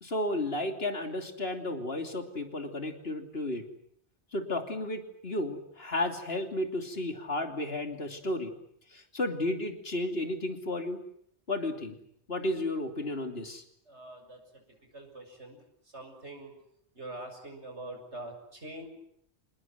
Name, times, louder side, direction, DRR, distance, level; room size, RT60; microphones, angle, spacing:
voice 1, 0.0-3.6 4.3-8.5 8.9-11.0 11.5-12.0 12.3-13.6, left 1 dB, 65° left, 6 dB, 3.3 m, -33 dB
voice 2, 13.9-14.4 14.9-15.6 15.9-16.5 17.0-18.9, right 1 dB, 90° right, 4 dB, 7.0 m, -44 dB
27.5 x 20.0 x 9.5 m, 0.70 s
omnidirectional pair, 1.1 m